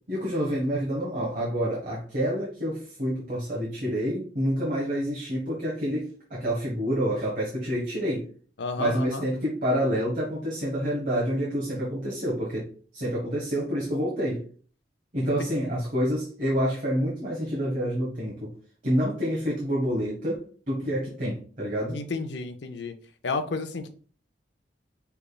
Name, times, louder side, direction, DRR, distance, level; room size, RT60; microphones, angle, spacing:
voice 1, 0.1-8.3 8.8-14.4 15.1-18.5 18.8-22.0, equal, 45° right, -4 dB, 1.1 m, -28 dB
voice 2, 8.6-9.3 15.2-15.3 21.9-22.9 23.2-23.9, left 4 dB, 70° left, 8 dB, 0.5 m, -31 dB
5.0 x 3.4 x 2.3 m, 0.42 s
head